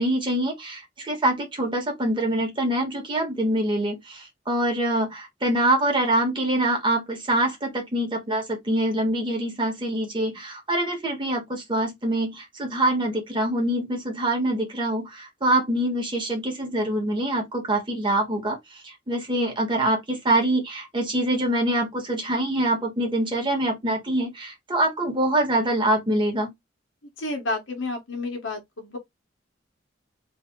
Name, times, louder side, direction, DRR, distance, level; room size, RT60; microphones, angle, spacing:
voice 1, 0.0-18.6 18.8-26.5, right 1 dB, 25° right, 1.5 m, -25 dB
voice 2, 27.2-29.0, left 2 dB, 85° left, 1.2 m, -30 dB
3.4 x 2.7 x 3.7 m
head